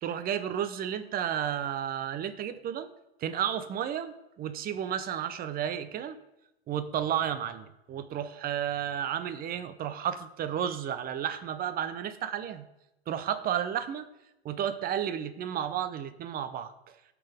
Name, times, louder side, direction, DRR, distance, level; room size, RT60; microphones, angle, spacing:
voice 1, 0.0-2.9 3.2-6.2 6.7-12.6 13.1-14.0 14.4-16.7, right 9 dB, 30° right, 12 dB, 0.9 m, -32 dB
17.5 x 6.1 x 3.5 m, 0.91 s
hypercardioid pair, 105°, 31 cm